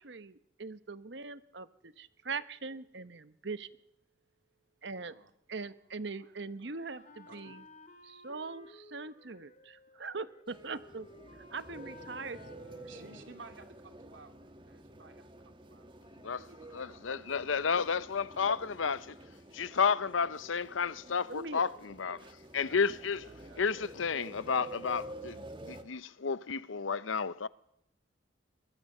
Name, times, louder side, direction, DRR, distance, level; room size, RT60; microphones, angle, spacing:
voice 1, 0.0-3.7 4.8-5.1 5.5-7.6 8.0-11.1 11.5-12.4 21.3-21.6, right 4 dB, 65° right, 1.0 m, -41 dB
voice 2, 5.8-6.3 7.3-7.6 12.9-17.7 18.2-18.5 22.5-22.8 23.1-23.7, right 3 dB, 80° right, 3.0 m, -56 dB
Wind instrument woodwind instrument, 6.6-13.6, left 2 dB, 40° left, 2.6 m, -56 dB
sound 1, 10.5-25.8, right 1 dB, 25° right, 1.5 m, -50 dB
voice 3, 16.7-19.2 19.5-23.3 23.6-27.5, left 5 dB, 90° left, 0.7 m, -32 dB
23.0 x 21.0 x 6.7 m
head